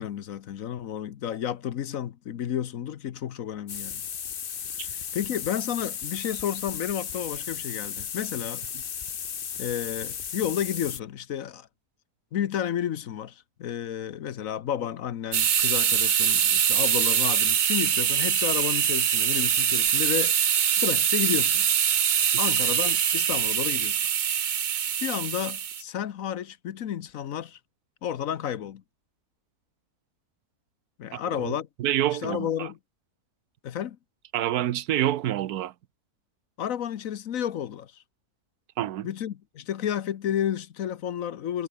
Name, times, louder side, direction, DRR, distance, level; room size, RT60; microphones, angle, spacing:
voice 1, 0.0-4.0 4.8-8.6 9.6-11.7 12.3-20.4 20.8-21.7 22.4-24.0 25.0-27.6 28.0-28.8 31.0-31.7 32.1-32.8 33.6-34.0 36.6-38.0 39.0-41.7, left 10 dB, 65° left, 1.2 m, -31 dB
sound 1, 3.7-11.0, left 8 dB, 45° left, 0.9 m, -35 dB
sound 2, 15.3-25.8, right 8 dB, 55° right, 0.5 m, -23 dB
voice 2, 31.1-32.7 34.3-35.7 38.8-39.1, right 12 dB, 90° right, 1.3 m, -28 dB
omnidirectional pair, 1.6 m